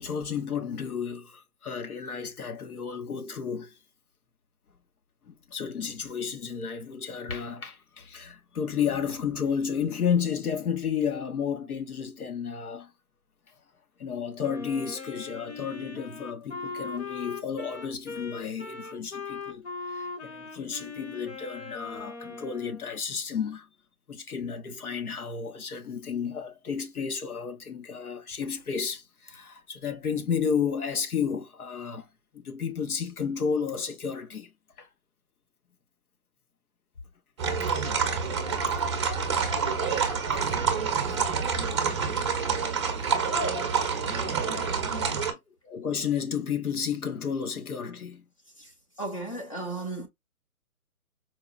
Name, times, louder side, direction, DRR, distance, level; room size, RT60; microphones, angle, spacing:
voice 1, 0.0-3.8 5.3-12.9 13.5-13.6 14.0-23.7 24.1-32.1 32.3-34.5 34.8-34.9 41.0-41.2 45.6-48.2, left 7 dB, 80° left, 1.0 m, -32 dB
Wind instrument woodwind instrument, 14.4-22.9, left 4 dB, 50° left, 1.1 m, -40 dB
sound 1, 37.4-45.3, right 5 dB, 20° right, 0.7 m, -27 dB
voice 2, 49.0-50.1, right 2 dB, 25° left, 0.5 m, -35 dB
4.7 x 2.2 x 2.4 m
hypercardioid pair, 155°, 44 cm